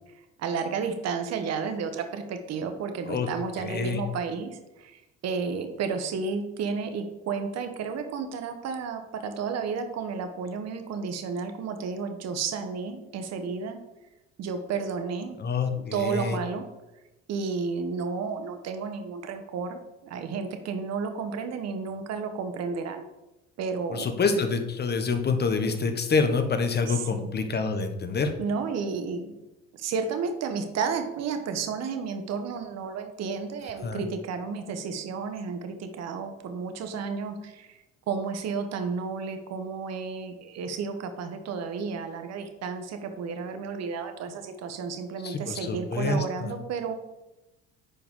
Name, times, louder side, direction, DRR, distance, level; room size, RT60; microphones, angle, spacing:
voice 1, 0.4-13.8 14.4-15.4 15.7-16.7 17.3-23.1 23.6-24.1 26.9-27.3 28.4-29.3 29.7-37.8 38.1-47.0, right 5 dB, 55° right, 7 dB, 1.3 m, -32 dB
voice 2, 3.6-4.0 15.4-16.4 23.9-28.3 33.8-34.0 45.2-46.5, left 4 dB, 35° left, 7 dB, 1.2 m, -27 dB
10.0 x 4.7 x 3.8 m, 0.98 s
supercardioid pair, 90°, 31 cm